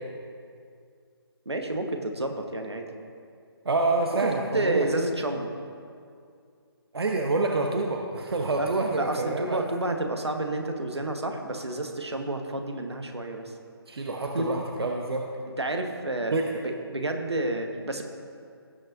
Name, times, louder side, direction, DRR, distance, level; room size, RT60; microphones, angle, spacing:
voice 1, 1.4-2.9 4.2-5.5 8.6-13.5 14.3-14.5 15.6-18.0, right 2 dB, 85° right, 4 dB, 1.2 m, -30 dB
voice 2, 3.6-4.9 6.9-9.6 13.9-15.3 16.3-16.5, right 3 dB, 70° right, 1 dB, 0.9 m, -27 dB
18.0 x 6.4 x 2.6 m, 2.3 s
figure-of-eight pair, 145°, 14 cm